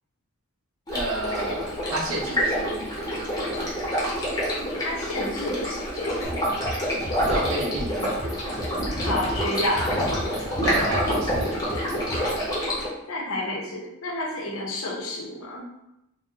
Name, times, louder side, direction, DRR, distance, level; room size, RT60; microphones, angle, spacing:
Stream, 0.9-12.9, equal, 20° left, 0.7 m, -27 dB
voice 1, 0.9-3.8 7.3-8.2 10.6-11.7, right 1 dB, 65° right, -1 dB, 0.7 m, -31 dB
voice 2, 4.8-6.3 9.0-10.1 13.1-15.6, left 1 dB, 70° left, -1 dB, 0.7 m, -30 dB
sound 1, 6.2-12.4, equal, 35° right, 1.5 m, -36 dB
4.0 x 2.0 x 2.4 m, 0.86 s
head